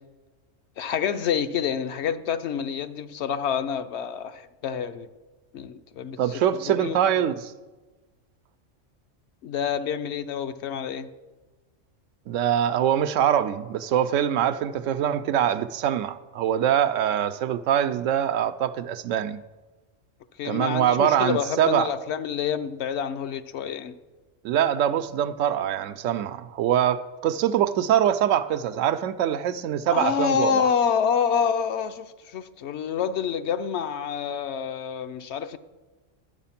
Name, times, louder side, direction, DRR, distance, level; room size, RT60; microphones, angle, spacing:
voice 1, 0.8-5.1 5.5-6.2 6.7-7.0 9.4-11.1 20.4-23.9 29.9-35.6, left 7 dB, 65° left, 0.8 m, -27 dB
voice 2, 6.2-7.5 12.3-19.4 20.4-21.9 24.4-30.7, right 10 dB, 85° right, 0.9 m, -24 dB
12.0 x 7.5 x 5.8 m
omnidirectional pair, 1.3 m